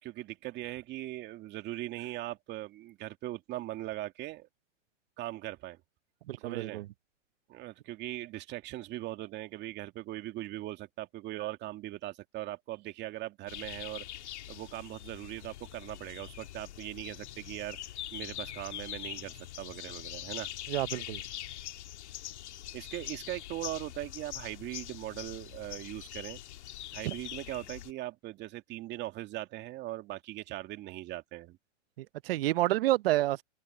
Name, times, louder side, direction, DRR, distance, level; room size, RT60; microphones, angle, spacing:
voice 1, 0.0-4.5 5.2-5.8 6.4-6.8 7.5-17.8 18.1-20.5 22.7-26.4 26.9-31.6, right 16 dB, 30° right, 2.3 m, -40 dB
voice 2, 6.3-6.8 20.7-21.2 27.0-27.1 32.0-33.4, right 16 dB, 50° right, 0.8 m, -29 dB
sound 1, 13.5-27.9, left 13 dB, 60° left, 2.2 m, -43 dB
open air
hypercardioid pair, 130°, 38 cm